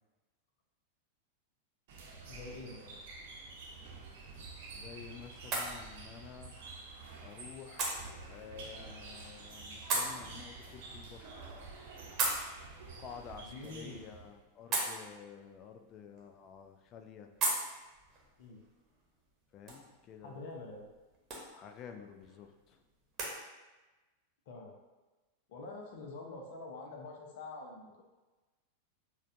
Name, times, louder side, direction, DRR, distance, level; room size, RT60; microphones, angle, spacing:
sound 1, 1.9-14.3, right 3 dB, 50° right, 0.7 m, -49 dB
voice 1, 2.3-3.0 13.4-14.0 18.4-18.6 20.2-20.9 24.5-24.7 25.5-28.0, left 3 dB, 55° left, 0 dB, 0.8 m, -46 dB
sound 2, 3.8-23.3, right 2 dB, 30° right, 1.0 m, -41 dB
voice 2, 4.7-6.5 7.2-11.3 13.0-17.3 19.5-20.4 21.5-22.8, left 7 dB, 35° left, 6 dB, 0.4 m, -51 dB
6.3 x 2.3 x 2.6 m, 1.2 s
figure-of-eight pair, 90°, 0 cm